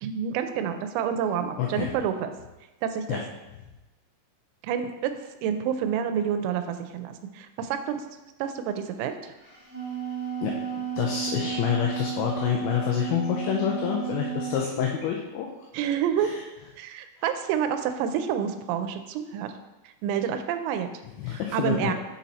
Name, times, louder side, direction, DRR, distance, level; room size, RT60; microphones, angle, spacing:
voice 1, 0.0-2.3 2.8-3.2 4.6-5.1 5.4-8.0 8.4-9.3 15.7-16.4 16.8-19.5 19.8-20.9 21.3-21.9, right 8 dB, 90° right, 8 dB, 3.2 m, -28 dB
voice 2, 1.6-1.9 3.1-3.2 10.4-10.5 11.0-15.5 16.2-16.4 21.2-21.9, left 9 dB, 85° left, 0 dB, 2.5 m, -27 dB
Wind instrument woodwind instrument, 9.5-14.6, right 7 dB, 40° right, 1.3 m, -33 dB
7.4 x 4.1 x 4.1 m, 1.1 s
omnidirectional pair, 5.8 m